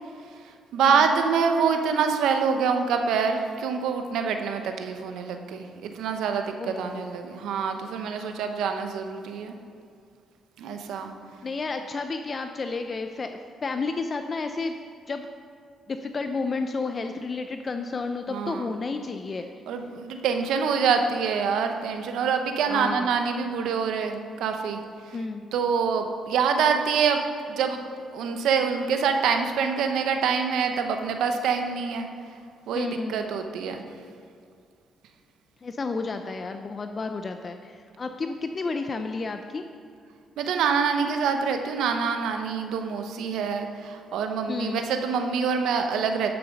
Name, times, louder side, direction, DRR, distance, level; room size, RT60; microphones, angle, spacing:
voice 1, 0.7-9.5 10.6-11.1 18.3-18.7 19.7-24.8 25.5-27.2 27.5-27.9 28.1-32.1 32.7-33.8 40.4-46.3, right 6 dB, 80° right, 5 dB, 0.9 m, -26 dB
voice 2, 6.5-7.3 11.4-14.7 15.1-15.3 15.9-19.5 22.7-23.2 25.1-25.4 32.7-33.2 35.6-39.6 44.5-44.9, left 4 dB, 40° left, 7 dB, 0.5 m, -31 dB
10.5 x 6.9 x 5.3 m, 2.3 s
cardioid pair, 90°, 0 cm